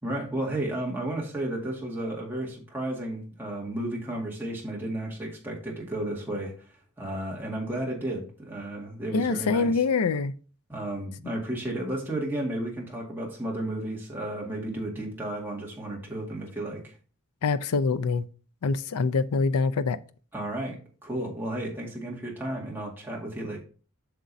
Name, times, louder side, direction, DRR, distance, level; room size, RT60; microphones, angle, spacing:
voice 1, 0.0-6.5 7.0-9.7 10.7-16.9 20.3-20.8 21.0-23.6, right 1 dB, 10° right, 1.9 m, -33 dB
voice 2, 9.1-10.3 17.4-18.3 18.6-20.0, left 4 dB, 90° left, 0.5 m, -25 dB
7.8 x 6.1 x 2.7 m
head